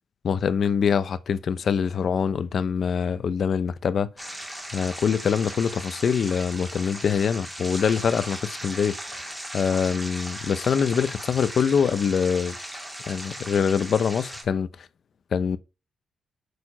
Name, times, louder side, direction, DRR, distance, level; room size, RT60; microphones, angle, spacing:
voice 1, 0.2-4.1 4.7-9.3 9.5-12.5 13.1-14.7 15.3-15.6, left 6 dB, 45° left, 0.8 m, -24 dB
sound 1, 4.2-14.4, right 1 dB, 5° right, 2.4 m, -37 dB
8.5 x 6.8 x 5.0 m
wide cardioid pair, 175°, 0 cm